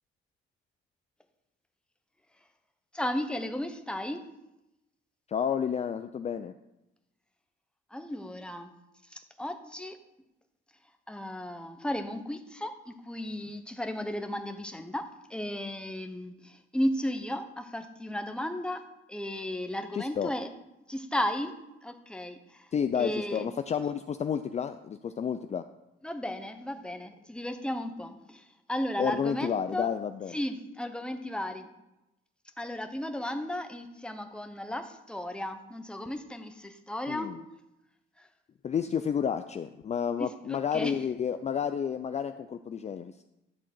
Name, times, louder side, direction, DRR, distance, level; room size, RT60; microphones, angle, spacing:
voice 1, 2.9-4.2 7.9-8.7 9.1-10.0 11.1-18.8 19.1-20.5 20.9-21.5 21.8-22.7 23.0-23.5 26.0-29.9 30.3-31.7 32.6-37.3 38.2-38.3 40.2-40.9, left 1 dB, 5° left, 7 dB, 0.9 m, -34 dB
voice 2, 5.3-6.5 19.9-20.3 22.7-25.6 29.0-30.4 37.1-37.4 38.6-43.2, left 7 dB, 35° left, 9 dB, 0.4 m, -31 dB
11.0 x 3.8 x 7.6 m, 0.93 s
cardioid pair, 90°, 20 cm